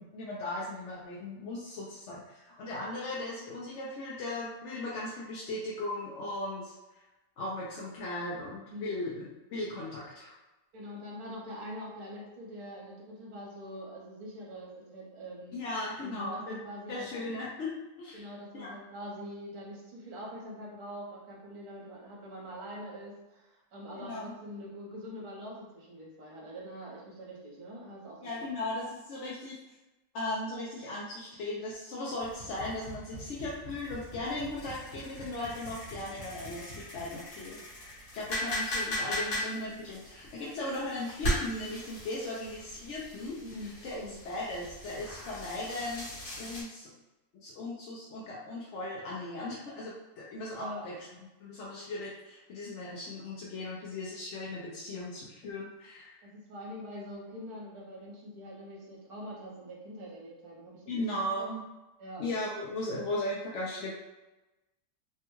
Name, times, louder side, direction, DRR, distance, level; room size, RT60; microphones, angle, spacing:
voice 1, 0.0-6.8 7.4-10.3 15.5-16.6 16.9-17.7 18.0-18.7 23.9-24.4 28.2-29.6 30.1-37.9 38.1-46.9 47.4-50.9 51.4-56.2 60.9-61.7 62.2-63.9, left 2 dB, 65° left, -5 dB, 0.7 m, -37 dB
voice 2, 10.7-15.6 16.0-17.2 18.1-28.5 43.4-44.1 50.5-50.8 56.2-61.0 61.3-61.4 62.0-62.2, equal, 70° right, -3 dB, 1.4 m, -44 dB
sound 1, 32.2-46.6, equal, 45° left, 1.4 m, -39 dB
3.4 x 2.2 x 3.0 m, 1.0 s
omnidirectional pair, 1.7 m